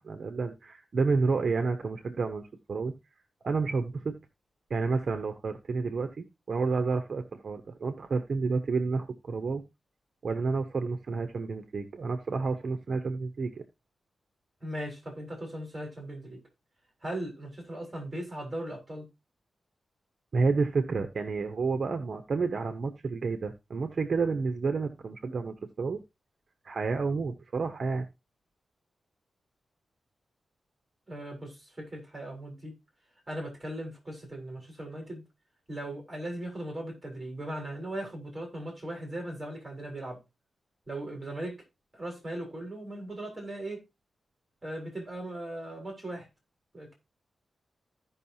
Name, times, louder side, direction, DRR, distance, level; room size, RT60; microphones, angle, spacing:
voice 1, 0.0-2.9 3.4-4.2 4.7-9.6 10.2-13.6 20.3-26.0 26.6-28.1, right 4 dB, 50° right, 0.8 m, -30 dB
voice 2, 14.6-16.4 17.0-19.1 31.1-32.7 33.3-35.2 35.7-40.2 40.9-41.6 41.9-43.8 44.6-46.3 46.7-46.9, right 1 dB, 15° right, 3.9 m, -38 dB
15.0 x 5.5 x 2.7 m
wide cardioid pair, 150°, 0 cm